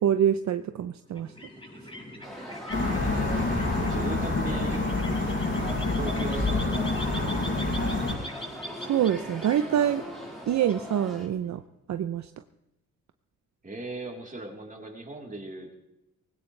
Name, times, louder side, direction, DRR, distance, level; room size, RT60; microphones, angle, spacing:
voice 1, 0.0-1.3 8.8-10.0 10.5-11.6 11.9-12.3, right 10 dB, 65° right, 9 dB, 0.7 m, -25 dB
sound 1, 1.1-11.5, equal, 15° left, 5.7 m, -42 dB
sound 2, 2.2-11.3, equal, ahead, 4.6 m, -42 dB
sound 3, 2.7-8.1, left 2 dB, 40° left, 6.9 m, -27 dB
voice 2, 2.7-4.9 5.9-7.8 13.6-15.7, right 2 dB, 25° right, 0 dB, 3.7 m, -39 dB
19.0 x 17.0 x 3.3 m, 0.89 s
cardioid pair, 85°, 30 cm